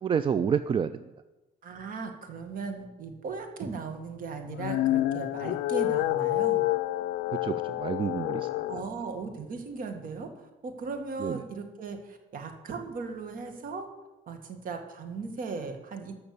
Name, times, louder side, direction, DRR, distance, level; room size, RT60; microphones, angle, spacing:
voice 1, 0.0-1.0 7.3-8.6 11.2-11.4, right 7 dB, 30° right, 13 dB, 0.4 m, -29 dB
voice 2, 1.6-6.7 8.6-13.9 14.3-16.1, right 4 dB, 55° right, 6 dB, 1.9 m, -37 dB
sound 1, 4.4-8.8, left 16 dB, 80° left, 0.4 m, -28 dB
13.5 x 5.9 x 7.0 m, 1.1 s
cardioid pair, 110°, 17 cm